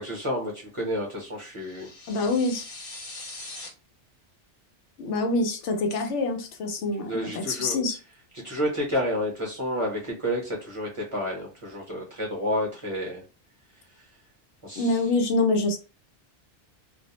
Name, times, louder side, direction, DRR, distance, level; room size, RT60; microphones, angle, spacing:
voice 1, 0.0-1.9 7.1-7.8 8.3-13.2 14.6-14.9, equal, 30° right, -2 dB, 0.7 m, -30 dB
sound 1, 1.6-3.7, left 2 dB, 35° left, 0.6 m, -41 dB
voice 2, 2.1-2.7 5.0-8.0 14.8-15.8, left 2 dB, 80° left, 5 dB, 1.0 m, -25 dB
2.5 x 2.0 x 2.8 m, 0.32 s
omnidirectional pair, 1.2 m